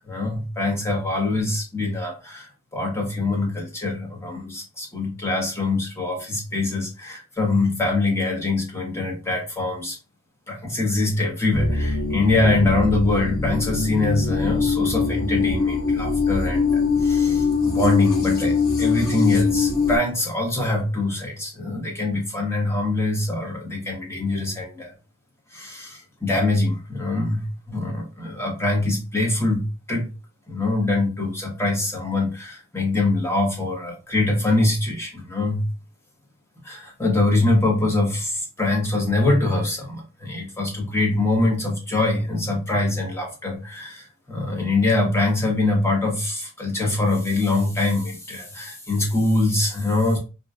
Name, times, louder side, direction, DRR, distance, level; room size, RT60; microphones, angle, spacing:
voice 1, 0.1-2.5 2.7-10.0 10.5-24.9 25.5-29.6 29.9-30.1 30.5-35.6 36.6-50.2, left 2 dB, 10° left, -1 dB, 0.7 m, -23 dB
sound 1, 11.5-20.0, left 5 dB, 65° left, 0.7 m, -22 dB
2.5 x 2.1 x 2.3 m, 0.32 s
head